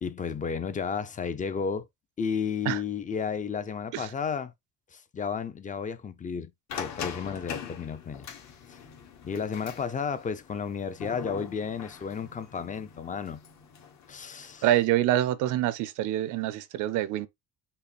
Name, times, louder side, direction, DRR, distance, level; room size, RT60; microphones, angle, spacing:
voice 1, 0.0-1.9 2.2-4.5 4.9-8.3 8.7-8.8 9.2-13.4 14.1-14.6, left 6 dB, 25° left, 0.6 m, -32 dB
sound 1, 6.7-14.8, left 7 dB, 60° left, 1.8 m, -43 dB
voice 2, 14.6-17.3, right 13 dB, 70° right, 0.6 m, -26 dB
5.6 x 2.1 x 4.2 m
cardioid pair, 105°, 32 cm